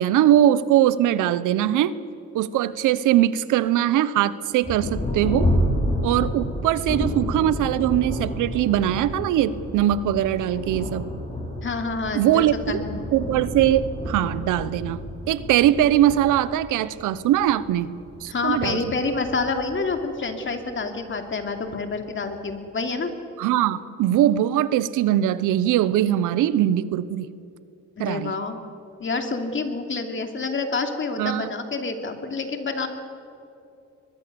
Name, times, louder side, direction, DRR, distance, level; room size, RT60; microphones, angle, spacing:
voice 1, 0.0-2.0 2.3-5.5 6.0-11.1 12.1-12.8 13.1-15.0 15.3-17.9 18.2-18.8 23.4-27.3 28.0-28.3 31.2-31.5, right 12 dB, 90° right, 16 dB, 0.9 m, -21 dB
Thunder, 4.6-20.7 21.5-21.6 22.1-22.5, equal, 20° left, 6.3 m, -30 dB
voice 2, 11.6-13.0 18.3-23.1 28.0-28.6 29.0-32.9, left 4 dB, 40° left, 5 dB, 2.9 m, -28 dB
22.5 x 22.0 x 7.0 m, 2.6 s
cardioid pair, 90°, 30 cm